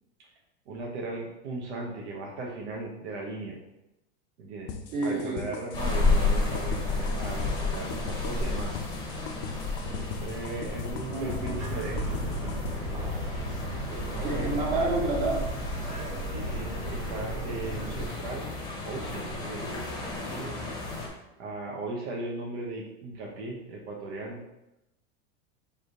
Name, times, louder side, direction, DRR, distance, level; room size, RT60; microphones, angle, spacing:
voice 1, 0.7-3.6 4.4-4.7 5.0-8.9 9.7-12.9 13.9-14.8 16.3-18.5 18.8-20.6 21.4-24.4, right 2 dB, 80° right, -2 dB, 1.0 m, -38 dB
sound 1, 4.7-12.7, left 7 dB, 55° left, 0.6 m, -38 dB
voice 2, 4.9-5.4 11.1-11.6 14.2-15.4, right 2 dB, 50° right, -2 dB, 1.2 m, -29 dB
sound 2, 5.7-21.1, left 3 dB, 15° left, 0.8 m, -32 dB
sound 3, 11.2-18.1, right 1 dB, 20° right, 1.0 m, -35 dB
3.5 x 2.7 x 4.5 m, 0.92 s
supercardioid pair, 145°, 33 cm